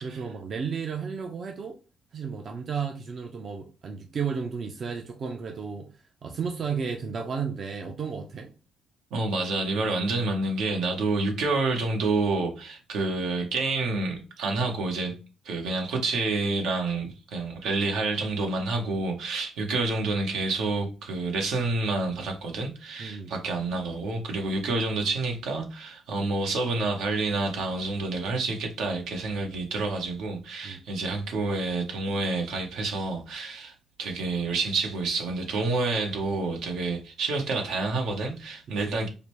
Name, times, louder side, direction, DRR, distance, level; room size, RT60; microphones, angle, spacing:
voice 1, 0.0-1.8 2.1-5.9 6.2-8.5 23.0-23.3 30.6-30.8 38.7-39.1, right 6 dB, 50° right, 0.6 m, -33 dB
voice 2, 9.1-15.1 15.4-33.7 34.0-39.1, right 3 dB, 85° right, 1.0 m, -28 dB
4.9 x 2.1 x 3.0 m
cardioid pair, 90°, 0 cm